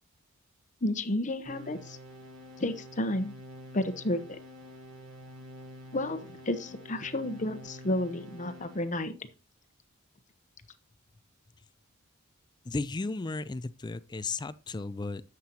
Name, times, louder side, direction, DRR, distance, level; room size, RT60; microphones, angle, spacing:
voice 1, 0.8-2.0 2.6-3.3 3.7-4.4 5.9-6.2 6.5-9.1, left 1 dB, 35° left, 1.0 m, -31 dB
sound 1, 1.4-9.0, equal, 65° right, 4.8 m, -48 dB
voice 2, 12.6-15.2, left 3 dB, 20° left, 0.4 m, -34 dB
11.5 x 7.5 x 2.9 m
head